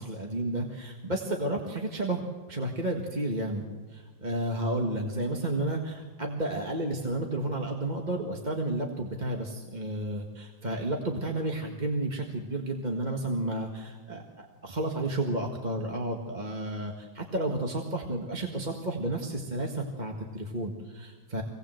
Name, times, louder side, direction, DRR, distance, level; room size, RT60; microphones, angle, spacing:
voice 1, 0.0-2.2 2.5-3.6 3.9-21.4, right 1 dB, 25° right, 1 dB, 1.7 m, -32 dB
25.5 x 18.5 x 7.8 m, 1.4 s
omnidirectional pair, 2.0 m